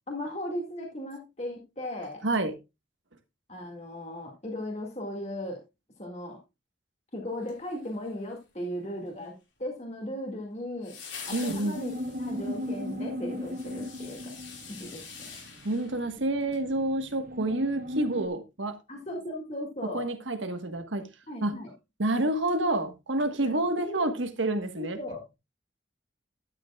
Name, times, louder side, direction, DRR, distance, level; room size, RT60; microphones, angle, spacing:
voice 1, 0.1-2.2 3.5-5.6 6.0-6.4 7.1-9.3 9.6-11.0 11.3-14.3 14.7-15.3 18.9-20.1 21.3-21.7 23.4-24.1 24.8-25.3, left 1 dB, 35° left, 2.1 m, -37 dB
voice 2, 2.2-2.5 11.3-11.8 15.6-18.8 19.9-21.1 21.4-21.5 22.0-25.0, right 1 dB, 90° right, 1.4 m, -28 dB
sound 1, 7.4-8.3 10.8-16.7 17.0-17.1, left 5 dB, 90° left, 5.4 m, -46 dB
sound 2, 11.7-18.3, left 1 dB, 50° right, 0.7 m, -37 dB
11.5 x 9.7 x 2.4 m
head